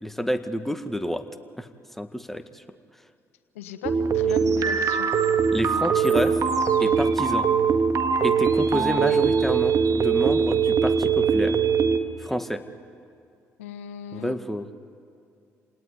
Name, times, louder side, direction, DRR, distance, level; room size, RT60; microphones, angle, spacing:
voice 1, 0.0-1.2 1.6-1.7 2.0-2.6 5.5-6.5 6.8-7.5 8.2-11.6 12.2-12.6 14.1-14.7, equal, 5° left, 8 dB, 1.9 m, -28 dB
voice 2, 3.5-5.1 13.6-14.3, left 9 dB, 90° left, 9 dB, 1.3 m, -38 dB
sound 1, 3.8-12.0, right 6 dB, 50° right, 2.0 m, -22 dB
28.0 x 18.5 x 9.8 m, 2.4 s
hypercardioid pair, 55°, 7 cm